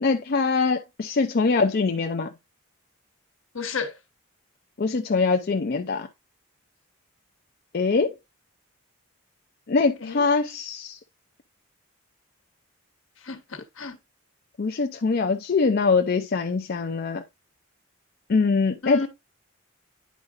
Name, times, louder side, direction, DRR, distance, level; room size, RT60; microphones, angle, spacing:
voice 1, 0.0-2.3 4.8-6.1 7.7-8.1 9.7-11.0 14.6-17.2 18.3-19.1, left 4 dB, 45° left, 0.4 m, -23 dB
voice 2, 3.5-3.9 10.0-10.2 13.2-14.0 18.8-19.1, left 4 dB, 70° left, 1.3 m, -31 dB
10.0 x 4.8 x 2.5 m
head